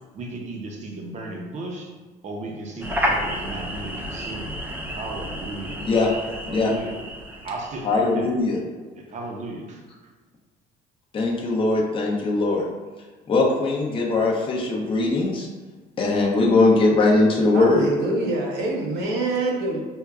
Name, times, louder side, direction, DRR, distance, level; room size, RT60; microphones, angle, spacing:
voice 1, 0.1-1.9 2.2-4.6 4.9-5.8 6.5-6.9 7.4-8.3 8.9-9.8, right 2 dB, 45° right, 0 dB, 0.7 m, -35 dB
sound 1, 2.8-8.1, equal, 10° right, 0.5 m, -31 dB
voice 2, 7.8-8.6 11.1-12.6 13.3-15.5 16.0-17.9, left 2 dB, 30° left, -2 dB, 0.6 m, -20 dB
voice 3, 17.5-19.8, right 2 dB, 80° right, -1 dB, 0.8 m, -25 dB
5.2 x 2.2 x 2.3 m, 1.3 s
cardioid pair, 110°, 17 cm